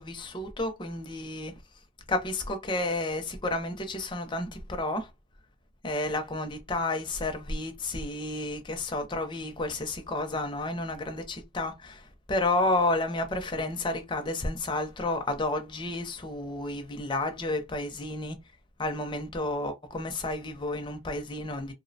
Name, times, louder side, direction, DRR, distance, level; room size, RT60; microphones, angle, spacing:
voice 1, 0.0-1.5 2.1-5.1 5.8-12.0 12.3-18.4 18.8-21.7, left 2 dB, 20° left, 0.5 m, -31 dB
2.6 x 2.0 x 2.6 m
head